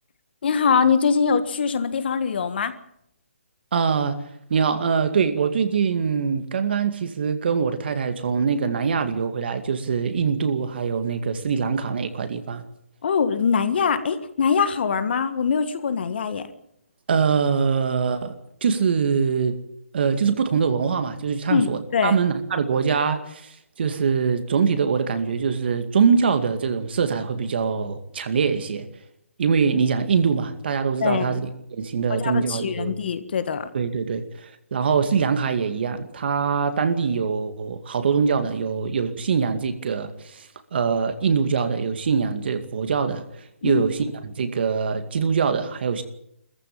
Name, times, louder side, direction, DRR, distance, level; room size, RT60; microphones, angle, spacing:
voice 1, 0.4-2.7 13.0-16.5 21.5-22.2 31.0-31.4 32.1-33.7 43.6-43.8, left 6 dB, 50° left, 1.6 m, -23 dB
voice 2, 3.7-4.2 4.5-12.6 17.1-19.6 19.9-23.5 23.8-28.8 29.4-33.0 33.7-43.2 43.6-44.0 44.4-46.0, right 6 dB, 50° right, 2.2 m, -23 dB
20.5 x 15.0 x 8.9 m
hypercardioid pair, 160°, 7 cm